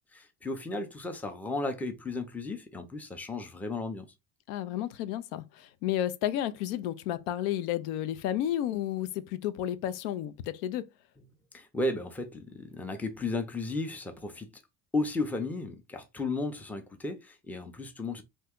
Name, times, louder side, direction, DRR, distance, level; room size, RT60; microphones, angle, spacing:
voice 1, 0.1-4.1 11.5-14.5 14.9-18.2, left 2 dB, 5° left, 0.4 m, -34 dB
voice 2, 4.5-10.9, left 12 dB, 90° left, 0.5 m, -32 dB
2.7 x 2.2 x 3.5 m
supercardioid pair, 105°, 44 cm